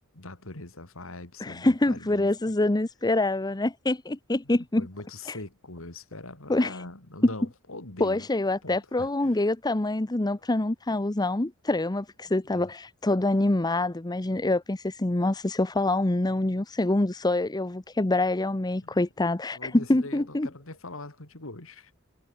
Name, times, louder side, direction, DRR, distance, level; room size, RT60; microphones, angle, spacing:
voice 1, 0.1-2.4 4.4-8.3 8.6-9.4 12.2-12.7 18.8-21.9, left 2 dB, 70° left, 3.4 m, -42 dB
voice 2, 1.4-4.9 5.3-5.4 6.5-6.8 8.0-20.5, left 2 dB, 20° left, 0.8 m, -26 dB
head